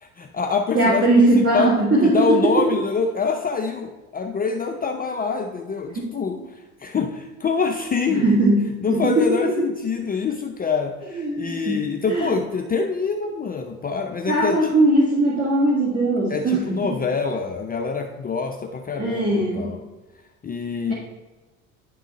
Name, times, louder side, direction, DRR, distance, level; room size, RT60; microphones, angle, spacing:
voice 1, 0.0-1.7 2.0-8.2 8.8-14.7 16.3-19.8 20.4-20.9, left 5 dB, 20° left, 3 dB, 0.6 m, -25 dB
voice 2, 0.7-2.2 6.0-6.1 8.1-8.6 8.9-9.3 9.6-9.7 11.1-11.8 12.1-12.3 14.3-16.9 19.0-19.7, right 2 dB, 30° right, -4 dB, 2.1 m, -19 dB
10.0 x 3.8 x 4.1 m, 1.2 s
hypercardioid pair, 70°, 43 cm